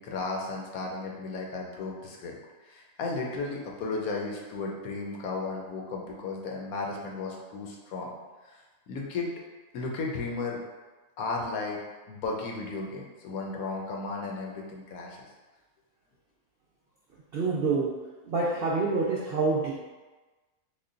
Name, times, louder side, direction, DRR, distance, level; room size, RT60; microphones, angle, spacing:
voice 1, 0.0-2.4 2.7-8.1 8.5-8.6 8.9-9.3 9.7-10.6 11.2-11.8 12.1-15.2, left 3 dB, 80° left, -1 dB, 1.1 m, -34 dB
voice 2, 17.3-17.9 18.2-19.7, right 3 dB, 70° right, -5 dB, 0.5 m, -26 dB
3.6 x 2.2 x 3.7 m, 1.2 s
omnidirectional pair, 1.5 m